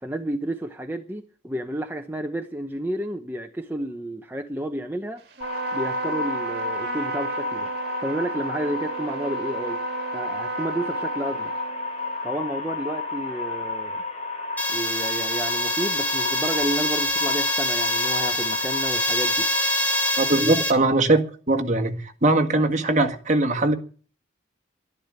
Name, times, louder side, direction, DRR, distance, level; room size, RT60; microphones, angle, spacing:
voice 1, 0.0-5.2 5.7-7.7 8.0-9.8 10.1-11.5 12.2-14.0 14.7-19.5 20.4-20.6, right 1 dB, 10° right, 0.8 m, -31 dB
Trumpet, 5.3-12.2, right 5 dB, 55° right, 2.3 m, -33 dB
sound 1, 5.4-20.4, left 3 dB, 35° left, 4.0 m, -32 dB
sound 2, 14.6-20.7, left 1 dB, 10° left, 2.3 m, -25 dB
voice 2, 20.2-23.7, right 2 dB, 40° right, 1.8 m, -21 dB
12.0 x 11.5 x 8.8 m
head